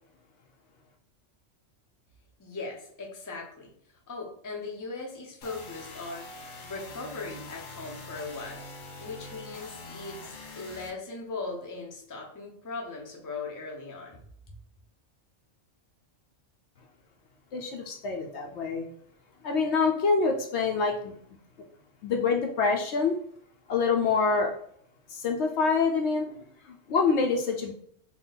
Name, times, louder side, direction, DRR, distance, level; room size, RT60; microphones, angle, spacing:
voice 1, 2.4-3.7 4.1-6.3 6.6-8.7 9.0-14.2, left 3 dB, 20° left, -1 dB, 0.6 m, -39 dB
sound 1, 5.4-10.9, left 2 dB, 90° left, 1.2 m, -44 dB
voice 2, 17.5-18.9 19.4-21.2 22.0-23.2 23.7-24.5 25.1-27.7, left 4 dB, 65° left, 2 dB, 0.8 m, -26 dB
3.8 x 2.3 x 3.9 m, 0.66 s
omnidirectional pair, 1.3 m